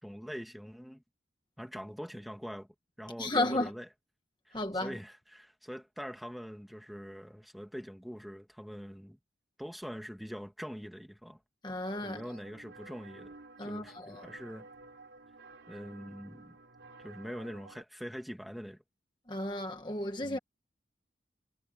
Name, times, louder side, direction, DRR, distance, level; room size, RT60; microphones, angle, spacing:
voice 1, 0.0-1.0 1.6-2.7 3.0-3.9 4.5-9.2 9.6-11.4 12.0-13.3 13.6-14.7 15.7-16.6 17.0-18.8 20.2-20.4, equal, ahead, 2.0 m, -43 dB
voice 2, 3.2-3.7 4.5-4.9 11.6-12.2 13.6-14.2 19.3-20.4, left 2 dB, 25° left, 1.4 m, -33 dB
sound 1, 11.8-17.8, right 3 dB, 80° right, 3.1 m, -53 dB
head